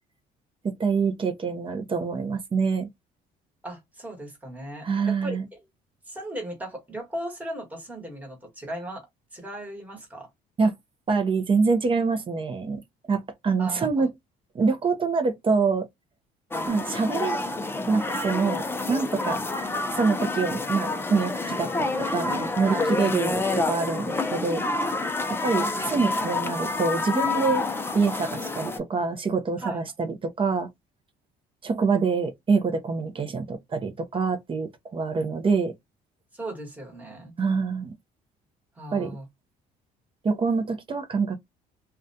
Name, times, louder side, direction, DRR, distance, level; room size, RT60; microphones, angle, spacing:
voice 1, 0.6-2.9 4.8-5.4 10.6-10.7 11.1-12.8 13.1-14.1 14.5-15.9 16.7-17.4 17.9-19.4 19.9-24.6 25.4-27.6 27.9-30.7 31.6-35.7 37.4-37.9 38.9-39.2 40.2-41.4, right 4 dB, 30° right, 0.6 m, -25 dB
voice 2, 3.6-5.6 6.1-9.1 9.3-10.3 13.6-14.1 22.6-22.9 29.6-29.8 36.3-37.3 38.8-39.3, right 1 dB, 10° right, 1.2 m, -37 dB
sound 1, 16.5-28.8, left 3 dB, 15° left, 0.4 m, -28 dB
2.4 x 2.2 x 2.6 m
cardioid pair, 110°, 17 cm